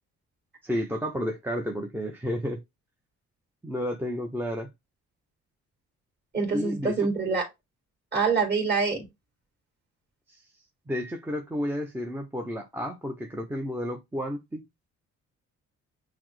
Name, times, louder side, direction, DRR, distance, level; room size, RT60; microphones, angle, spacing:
voice 1, 0.6-2.6 3.6-4.7 6.5-7.1 10.3-10.4 10.9-14.6, equal, 5° right, 0.5 m, -31 dB
voice 2, 6.3-7.5 8.1-9.0, right 4 dB, 35° right, 1.9 m, -25 dB
5.7 x 2.0 x 3.1 m
cardioid pair, 90°, 30 cm